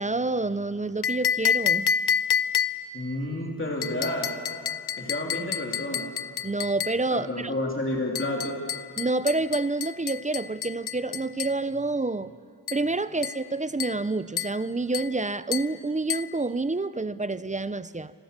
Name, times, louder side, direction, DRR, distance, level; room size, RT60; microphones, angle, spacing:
voice 1, 0.0-1.9 6.4-7.5 9.0-12.3 12.7-18.1, right 3 dB, 20° right, 15 dB, 0.5 m, -28 dB
sound 1, 1.0-3.0 3.8-7.1 8.2-11.6 12.7-12.9 13.2-13.5 13.8-14.1 14.4-14.6 14.9-15.2 15.5-15.8 16.1-16.4, left 7 dB, 70° left, 0.7 m, -29 dB
voice 2, 2.9-4.3 5.0-6.1 7.1-8.6, left 1 dB, 30° left, -1 dB, 3.2 m, -30 dB
27.0 x 22.5 x 6.7 m, 2.3 s
wide cardioid pair, 120°, 40 cm